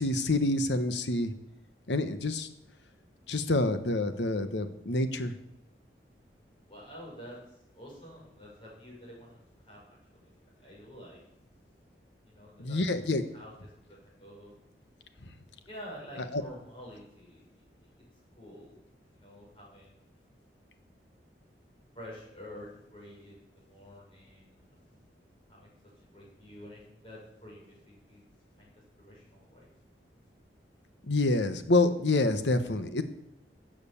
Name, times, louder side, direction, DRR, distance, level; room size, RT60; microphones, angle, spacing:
voice 1, 0.0-1.3 1.9-2.5 3.3-5.3 12.6-13.2 16.3-16.4 31.1-33.0, left 2 dB, 85° left, 10 dB, 1.2 m, -27 dB
voice 2, 6.7-7.4 7.7-10.0 10.2-10.3 10.6-11.2 12.3-12.8 13.3-13.5 13.9-14.5 15.6-17.7 18.4-18.8 19.1-20.0 21.9-24.9 25.5-25.7 26.1-28.2 28.6-28.7 29.0-29.7, equal, 30° left, -4 dB, 6.3 m, -49 dB
14.0 x 7.9 x 7.1 m, 0.81 s
head